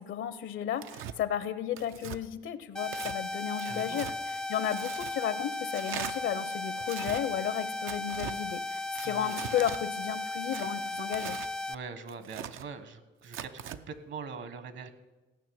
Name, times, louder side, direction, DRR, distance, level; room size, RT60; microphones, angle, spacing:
voice 1, 0.0-11.4, left 10 dB, 75° left, 14 dB, 0.9 m, -33 dB
Tearing, 0.8-1.2 1.8-2.2 2.8-3.2 3.6-4.1 4.7-5.1 5.7-6.1 6.8-7.2 7.9-8.4 8.9-9.8 10.5-11.5 12.1-12.7 13.2-13.8, right 10 dB, 90° right, 0.6 m, -41 dB
sound 1, 2.7-11.7, left 2 dB, 5° left, 0.4 m, -36 dB
voice 2, 3.6-4.2 9.0-9.3 11.7-14.9, right 5 dB, 65° right, 12 dB, 1.4 m, -43 dB
15.5 x 6.0 x 9.4 m, 1.1 s
cardioid pair, 90°, 20 cm